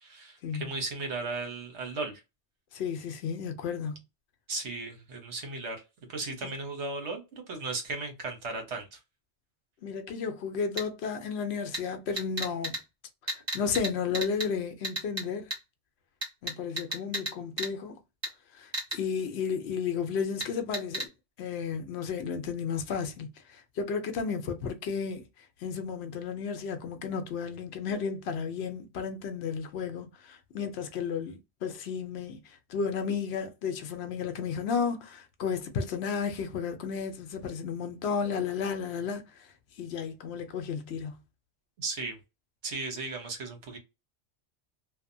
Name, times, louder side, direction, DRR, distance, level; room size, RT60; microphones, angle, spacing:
voice 1, 0.0-2.2 4.5-5.8 6.1-7.2 7.5-9.0 41.8-42.2 42.6-43.8, right 3 dB, 75° right, 1.2 m, -36 dB
voice 2, 2.7-4.0 6.4-6.5 9.8-12.8 13.3-15.5 16.4-18.0 18.5-21.1 21.4-25.3 25.6-39.5 39.8-41.2, left 6 dB, 70° left, 0.8 m, -33 dB
sound 1, 10.8-10.9 11.7-11.8 12.2-12.8 13.3-13.9 14.1-14.5 14.8-15.2 15.5-15.6 16.2-17.3 17.6-17.7 18.2-18.3 18.7-19.0 20.4-20.5 20.7-21.1, right 1 dB, 30° right, 1.2 m, -32 dB
2.7 x 2.1 x 2.6 m
omnidirectional pair, 1.2 m